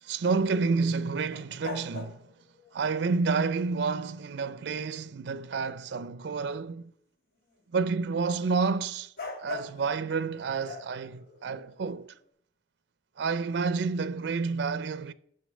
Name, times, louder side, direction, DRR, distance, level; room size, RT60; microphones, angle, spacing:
voice 1, 0.0-2.3 2.7-6.9 7.7-9.1 9.4-12.1 13.2-15.1, right 4 dB, 85° right, 0.4 m, -29 dB
sound 1, 1.3-2.9 9.2-9.9 10.6-12.1, left 4 dB, 55° left, 1.3 m, -41 dB
8.0 x 5.9 x 6.3 m
head